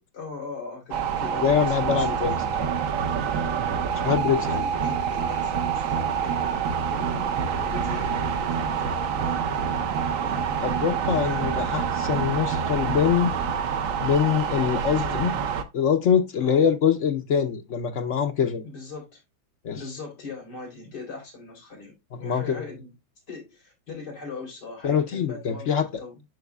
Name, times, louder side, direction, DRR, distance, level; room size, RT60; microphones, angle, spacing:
voice 1, 0.1-2.4 4.4-6.5 6.9-9.4 9.8-11.8 14.5-15.2 16.4-16.7 18.6-19.2 19.7-22.9 23.3-26.2, left 3 dB, 55° left, 4.3 m, -40 dB
sound 1, 0.9-15.6, right 7 dB, 60° right, 0.9 m, -27 dB
voice 2, 1.4-2.7 3.9-4.6 10.6-13.3 14.0-15.3 15.7-18.6 19.6-19.8 22.2-22.6 24.8-25.8, left 8 dB, 80° left, 0.6 m, -24 dB
12.0 x 4.1 x 2.2 m
omnidirectional pair, 2.2 m